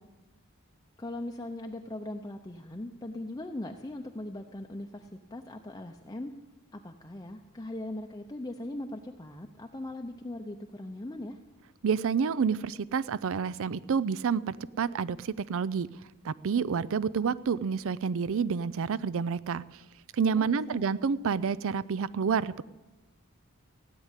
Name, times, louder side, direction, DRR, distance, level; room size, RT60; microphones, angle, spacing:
voice 1, 1.0-6.3 6.7-11.4 20.4-20.9, left 1 dB, 15° left, 3 dB, 0.7 m, -40 dB
voice 2, 11.8-15.9 16.2-19.6 20.2-22.6, right 6 dB, 65° right, 19 dB, 0.4 m, -29 dB
16.5 x 9.7 x 8.2 m, 1.2 s
head